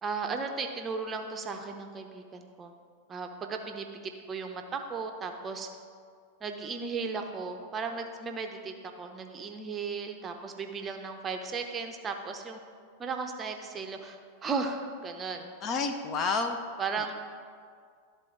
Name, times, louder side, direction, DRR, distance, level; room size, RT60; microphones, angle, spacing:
voice 1, 0.0-2.7 3.1-5.7 6.4-12.6 13.0-15.5 16.8-17.1, right 4 dB, 20° right, 5 dB, 0.6 m, -36 dB
voice 2, 15.6-16.6, left 4 dB, 35° left, 6 dB, 0.5 m, -29 dB
12.0 x 4.1 x 3.7 m, 2.1 s
figure-of-eight pair, 90°, 0 cm